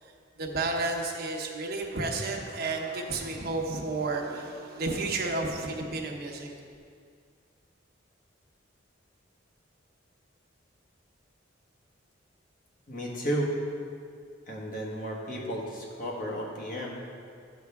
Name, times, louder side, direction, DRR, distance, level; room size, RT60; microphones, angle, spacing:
voice 1, 0.0-6.6, right 3 dB, 55° right, 1 dB, 0.9 m, -32 dB
voice 2, 12.9-13.6 14.5-17.0, right 1 dB, 45° left, -2 dB, 1.4 m, -33 dB
10.5 x 6.4 x 3.5 m, 2.2 s
head